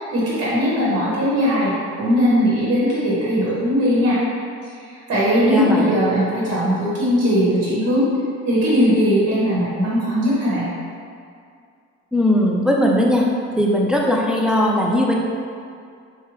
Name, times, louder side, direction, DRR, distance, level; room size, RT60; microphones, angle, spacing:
voice 1, 0.0-4.2 4.7-8.1 8.4-10.7, equal, 55° right, -8 dB, 1.2 m, -19 dB
voice 2, 5.5-5.9 12.1-13.3 13.5-15.1, left 1 dB, 5° right, -2 dB, 0.3 m, -18 dB
3.4 x 2.2 x 3.2 m, 2.3 s
cardioid pair, 90°, 30 cm